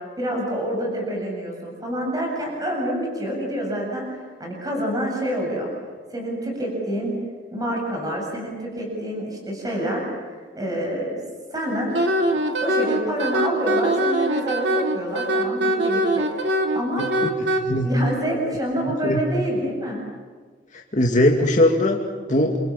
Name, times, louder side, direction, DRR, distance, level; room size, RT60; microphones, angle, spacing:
voice 1, 0.2-5.7 6.1-7.1 7.5-11.2 11.5-12.0 12.3-17.1 17.8-20.0, equal, 20° right, -1 dB, 7.8 m, -27 dB
Wind instrument woodwind instrument, 11.9-17.6, right 1 dB, 65° right, 3.2 m, -22 dB
voice 2, 17.0-17.3 17.6-17.9 19.0-19.2 20.7-22.6, left 1 dB, 40° left, 0 dB, 2.3 m, -20 dB
29.5 x 27.0 x 7.4 m, 1.6 s
head